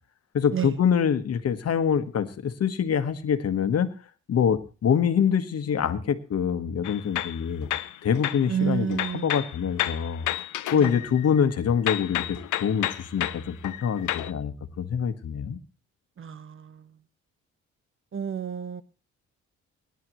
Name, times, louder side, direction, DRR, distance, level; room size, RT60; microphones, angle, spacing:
voice 1, 0.3-3.9 4.3-7.7 8.0-10.2 10.7-15.6, left 7 dB, 55° left, 1.5 m, -25 dB
sound 1, 6.8-8.5 8.9-11.5 11.9-14.3, left 14 dB, 80° left, 0.8 m, -31 dB
voice 2, 8.5-9.3 10.7-11.0 16.2-16.9 18.1-18.8, right 8 dB, 45° right, 1.0 m, -30 dB
24.0 x 10.5 x 3.1 m
cardioid pair, 90°, 30 cm